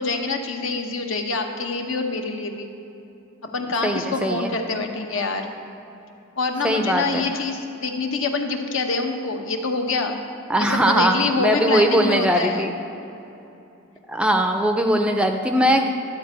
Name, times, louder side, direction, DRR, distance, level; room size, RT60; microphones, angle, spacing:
voice 1, 0.0-2.7 3.5-5.5 6.4-10.2 10.6-12.7, left 3 dB, 65° left, 4 dB, 1.0 m, -26 dB
voice 2, 3.8-4.5 6.6-7.2 10.5-12.7 14.1-15.9, equal, 5° right, 4 dB, 0.4 m, -20 dB
12.0 x 4.5 x 8.1 m, 2.9 s
head